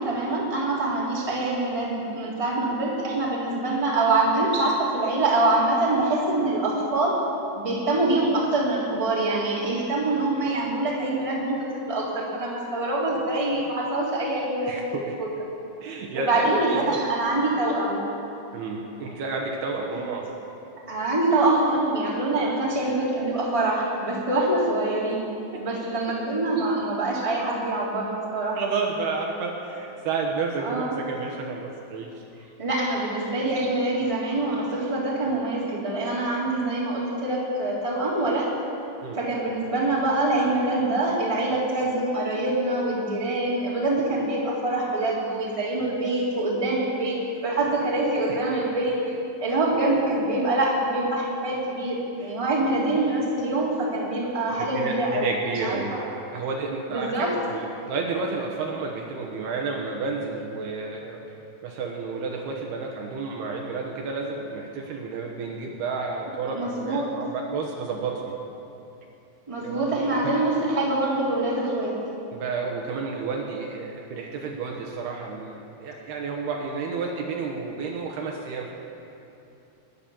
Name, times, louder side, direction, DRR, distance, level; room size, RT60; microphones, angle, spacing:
voice 1, 0.0-7.1 7.5-11.6 11.9-14.8 15.2-15.3 16.1-18.0 20.9-25.3 25.6-28.6 30.6-31.0 32.6-38.5 39.2-49.0 49.4-55.3 55.6-56.1 56.9-57.4 66.5-67.1 69.5-71.9, right 2 dB, 10° right, -6 dB, 2.4 m, -25 dB
voice 2, 14.6-15.1 15.8-16.6 16.9-17.0 18.5-20.3 25.5-25.9 28.6-32.1 32.4-32.5 39.0-39.2 48.3-48.4 52.2-52.3 54.6-56.1 56.3-61.2 61.6-68.4 69.6-70.0 70.2-70.4 72.3-78.7, right 4 dB, 70° right, 0 dB, 3.0 m, -31 dB
19.0 x 10.5 x 7.1 m, 2.8 s
omnidirectional pair, 5.1 m